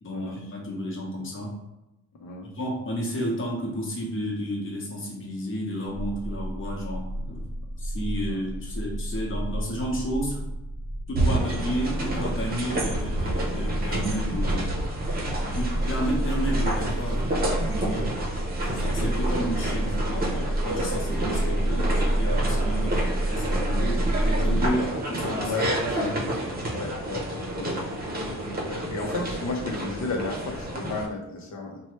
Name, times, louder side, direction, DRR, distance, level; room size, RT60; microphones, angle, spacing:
voice 1, 0.0-1.6 2.4-10.5 11.1-14.7 15.5-18.1 18.7-23.0 23.3-26.7 27.6-27.8 28.4-28.5, equal, 40° left, -2 dB, 1.1 m, -32 dB
sound 1, 5.9-24.7, right 1 dB, 5° left, 0.9 m, -29 dB
sound 2, 11.1-31.1, right 1 dB, 30° right, 0.7 m, -30 dB
voice 2, 26.7-27.9 28.6-31.8, left 3 dB, 65° left, 1 dB, 0.8 m, -33 dB
3.0 x 2.3 x 3.1 m, 0.97 s
cardioid pair, 90°, 30 cm